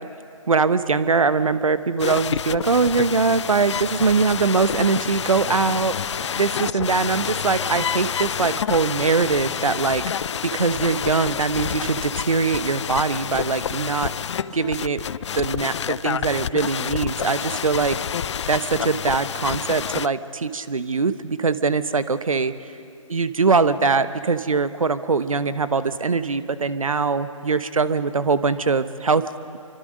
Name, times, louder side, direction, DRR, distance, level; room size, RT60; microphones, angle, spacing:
voice 1, 0.5-6.0 6.4-10.0 10.4-14.1 14.5-15.0 15.3-18.0 18.5-22.5 23.1-29.2, right 4 dB, 80° right, 13 dB, 1.1 m, -22 dB
sound 1, 2.0-20.1, left 8 dB, 55° left, 0.5 m, -28 dB
26.5 x 24.0 x 5.2 m, 2.5 s
figure-of-eight pair, 135°, 17 cm